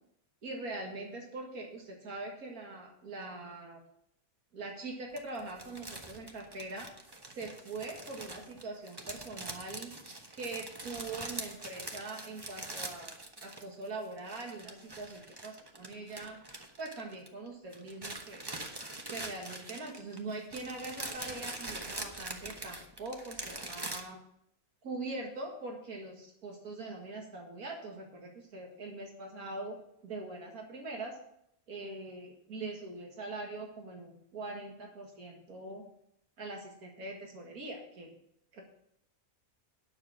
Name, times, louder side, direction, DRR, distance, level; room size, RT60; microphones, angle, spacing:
voice 1, 0.4-3.8 4.5-6.9 7.3-9.9 10.3-16.4 16.8-18.4 19.1-24.2 24.8-29.8 30.0-31.2 31.7-35.8 36.4-38.1 38.5-38.6, right 2 dB, 90° right, 1 dB, 2.3 m, -42 dB
sound 1, 5.2-13.9 14.1-17.5 17.7-24.0, right 2 dB, 20° right, 0.9 m, -43 dB
9.8 x 6.4 x 7.1 m, 0.73 s
omnidirectional pair, 1.5 m